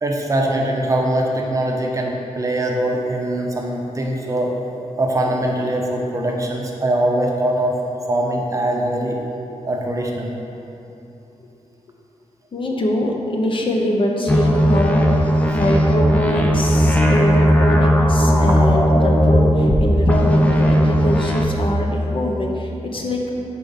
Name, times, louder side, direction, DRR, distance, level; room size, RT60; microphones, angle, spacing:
voice 1, 0.0-4.5 5.0-7.8 8.1-9.2 9.6-10.3, right 1 dB, 25° right, -1 dB, 0.7 m, -22 dB
voice 2, 12.5-23.3, left 1 dB, 45° left, 0 dB, 0.7 m, -23 dB
sound 1, 14.3-19.8 20.1-21.4, equal, 10° left, 0.5 m, -16 dB
5.2 x 4.6 x 5.6 m, 2.9 s
wide cardioid pair, 145°, 12 cm